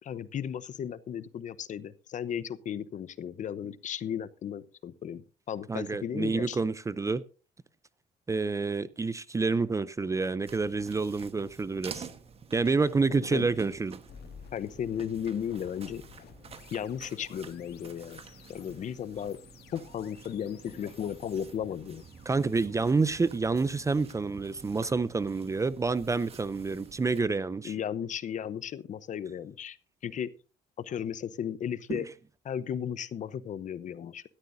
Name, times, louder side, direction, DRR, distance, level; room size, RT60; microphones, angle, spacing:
voice 1, 0.0-6.6 13.1-13.5 14.5-16.0 16.7-18.2 18.5-19.4 19.7-22.0 27.6-29.8 30.0-30.3 30.8-32.1 32.4-34.2, left 8 dB, 45° left, 0.8 m, -35 dB
voice 2, 5.7-7.2 8.3-12.1 12.5-14.0 22.3-27.7 31.9-32.0, right 4 dB, 20° right, 0.5 m, -28 dB
sound 1, 10.5-27.2, right 6 dB, 35° right, 1.2 m, -50 dB
sound 2, 14.1-25.1, left 8 dB, 70° left, 2.2 m, -55 dB
16.5 x 13.0 x 2.7 m
cardioid pair, 110°, 17 cm